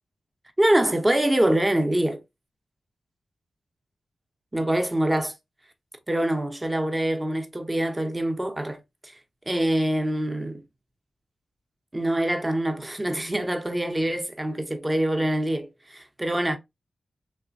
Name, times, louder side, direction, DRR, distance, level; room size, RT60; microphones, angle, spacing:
voice 1, 0.6-2.2 4.5-5.3 6.1-9.1 9.5-10.6 11.9-16.6, right 1 dB, 20° right, 0.6 m, -25 dB
3.0 x 2.1 x 2.5 m
cardioid pair, 60°, 0 cm